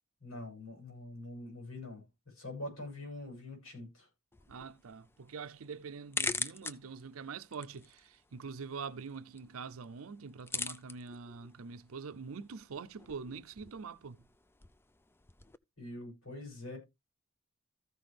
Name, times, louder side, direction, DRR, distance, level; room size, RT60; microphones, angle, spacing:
voice 1, 0.2-2.0 2.3-4.1 15.8-16.8, left 1 dB, 85° left, 7.1 m, -44 dB
sound 1, 4.3-15.6, left 3 dB, 10° left, 0.4 m, -44 dB
voice 2, 4.5-14.2, right 5 dB, 90° right, 0.6 m, -44 dB
14.5 x 5.9 x 3.4 m
head